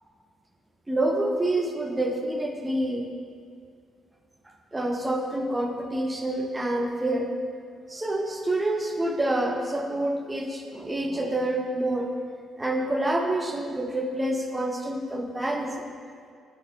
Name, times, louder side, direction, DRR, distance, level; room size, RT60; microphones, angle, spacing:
voice 1, 0.9-3.1 4.7-7.3 7.9-12.1 12.6-15.9, right 1 dB, 15° right, 3 dB, 0.3 m, -27 dB
3.7 x 2.0 x 3.8 m, 2.2 s
cardioid pair, 90°, 0 cm